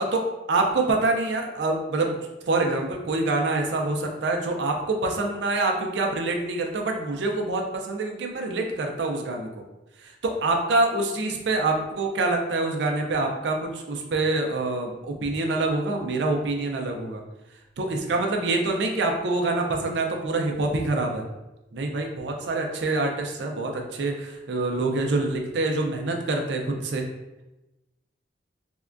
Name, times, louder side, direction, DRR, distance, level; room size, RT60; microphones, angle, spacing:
voice 1, 0.0-9.5 10.0-17.2 17.8-21.2 21.7-27.1, right 2 dB, 75° right, 3 dB, 0.4 m, -26 dB
3.5 x 2.2 x 2.4 m, 0.99 s
head